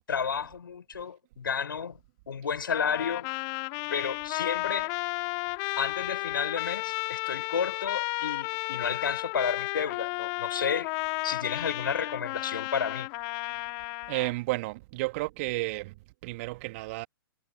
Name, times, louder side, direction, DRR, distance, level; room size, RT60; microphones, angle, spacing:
voice 1, 0.1-2.0 2.3-3.3 3.9-5.0 5.8-10.9 11.2-13.1, left 6 dB, 65° left, 6.8 m, -31 dB
Trumpet, 2.7-14.3, left 35 dB, 30° left, 2.2 m, -33 dB
voice 2, 14.1-15.9 16.2-17.1, right 22 dB, 35° right, 2.6 m, -32 dB
figure-of-eight pair, 115°, 12 cm